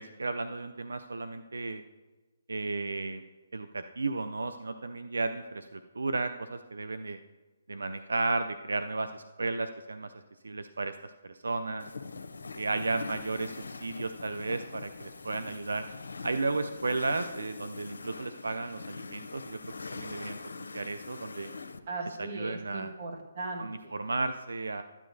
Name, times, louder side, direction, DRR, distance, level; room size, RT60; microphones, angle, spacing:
voice 1, 0.0-1.8 2.5-3.2 3.5-7.2 7.7-10.1 10.4-11.9 12.6-15.9 16.2-19.6 19.9-20.4 20.7-21.5 22.2-22.9 23.6-24.8, right 3 dB, 85° right, 9 dB, 0.4 m, -34 dB
sound 1, 11.8-21.8, left 4 dB, 85° left, 0.7 m, -43 dB
voice 2, 21.9-23.9, right 2 dB, 50° right, 1 dB, 1.6 m, -38 dB
13.0 x 9.5 x 2.7 m, 1.2 s
hypercardioid pair, 150°, 0 cm